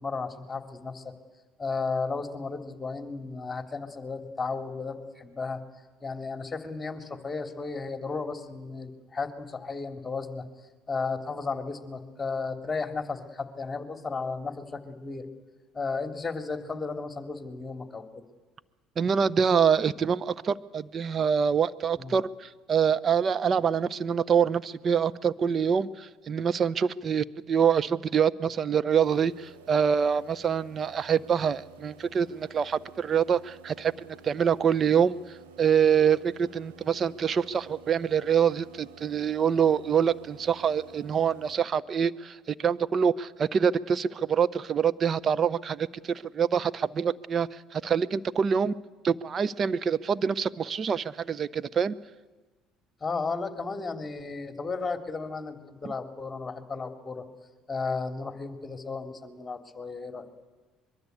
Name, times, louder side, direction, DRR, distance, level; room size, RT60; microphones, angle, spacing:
voice 1, 0.0-1.1 1.6-5.6 6.0-10.4 10.9-15.2 15.7-18.2 22.0-22.2 53.0-57.2 57.7-60.3, left 4 dB, 20° left, 5 dB, 3.1 m, -34 dB
voice 2, 19.0-35.2 35.6-48.8 49.0-51.9, right 7 dB, 45° right, 16 dB, 0.9 m, -25 dB
sound 1, 29.0-41.6, right 8 dB, 85° right, 3.0 m, -52 dB
24.0 x 22.5 x 8.3 m, 1.3 s
hypercardioid pair, 60°, 0 cm